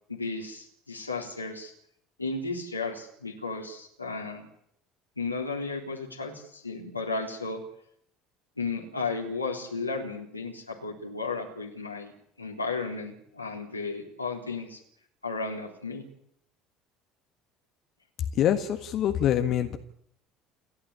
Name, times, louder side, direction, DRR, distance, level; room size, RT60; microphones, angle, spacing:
voice 1, 0.1-1.7 2.2-4.5 5.2-7.6 8.6-14.8 15.2-16.0, left 3 dB, 85° left, 1 dB, 3.6 m, -34 dB
voice 2, 18.3-19.8, left 10 dB, 50° left, 7 dB, 1.6 m, -25 dB
29.0 x 12.0 x 9.9 m, 0.70 s
figure-of-eight pair, 60°, 0 cm